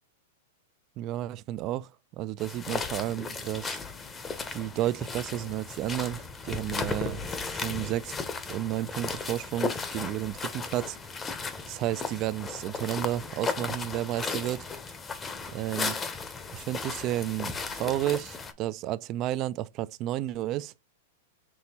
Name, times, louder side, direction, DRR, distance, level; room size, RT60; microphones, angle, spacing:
voice 1, 1.0-1.9 2.2-3.8 4.5-8.1 8.5-11.0 11.7-14.7 15.5-16.0 16.5-20.7, right 14 dB, 35° right, 0.3 m, -32 dB
sound 1, 2.4-18.5, left 4 dB, 15° left, 0.7 m, -35 dB
6.1 x 3.0 x 2.8 m
hypercardioid pair, 140°, 0 cm